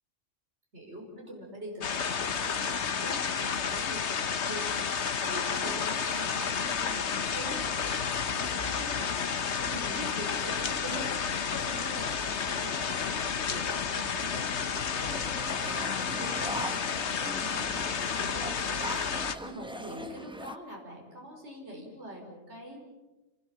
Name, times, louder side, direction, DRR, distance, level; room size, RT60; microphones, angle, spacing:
voice 1, 0.7-4.8 5.2-15.1 15.7-16.9 17.4-22.8, equal, 60° right, -1 dB, 5.5 m, -43 dB
sound 1, 1.8-19.4, left 6 dB, 60° left, 1.3 m, -31 dB
sound 2, 15.1-20.6, right 1 dB, 5° right, 0.9 m, -40 dB
28.0 x 20.0 x 7.6 m, 1.1 s
omnidirectional pair, 1.3 m